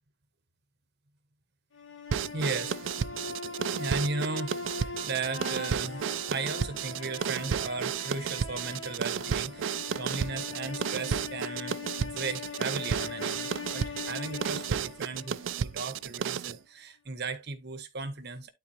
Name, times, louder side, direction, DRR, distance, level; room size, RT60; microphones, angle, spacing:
sound 1, 1.7-15.9, left 4 dB, 80° left, 1.7 m, -41 dB
sound 2, 2.1-16.6, right 8 dB, 70° right, 0.3 m, -33 dB
voice 1, 2.3-2.8 3.7-18.5, right 3 dB, 55° right, 1.3 m, -36 dB
12.0 x 4.0 x 2.9 m
head